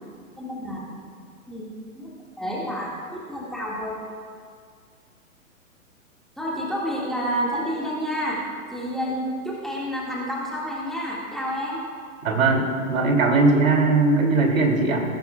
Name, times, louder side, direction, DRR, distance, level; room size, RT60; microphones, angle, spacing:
voice 1, 0.4-1.0 1.5-2.1 2.4-4.0 6.4-8.4 8.7-11.8, equal, ahead, -6 dB, 1.9 m, -29 dB
voice 2, 12.2-15.0, right 3 dB, 70° right, 1 dB, 2.7 m, -19 dB
19.0 x 10.5 x 2.3 m, 2.1 s
hypercardioid pair, 130°, 42 cm